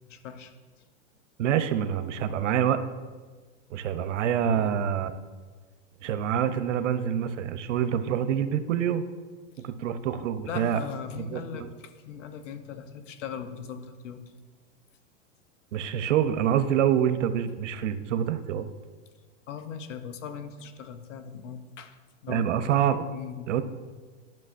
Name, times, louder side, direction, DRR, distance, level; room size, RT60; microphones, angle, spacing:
voice 1, 0.1-0.5 4.5-4.7 9.6-9.7 10.5-14.2 19.5-22.0 22.2-22.8 23.1-23.5, left 7 dB, 85° left, 9 dB, 0.9 m, -39 dB
voice 2, 1.4-2.8 3.7-5.1 6.0-9.1 9.6-10.8 11.3-11.7 15.7-18.7 22.3-23.0 23.5-23.6, right 9 dB, 85° right, 11 dB, 0.7 m, -26 dB
10.5 x 6.0 x 2.5 m, 1.4 s
supercardioid pair, 150°, 36 cm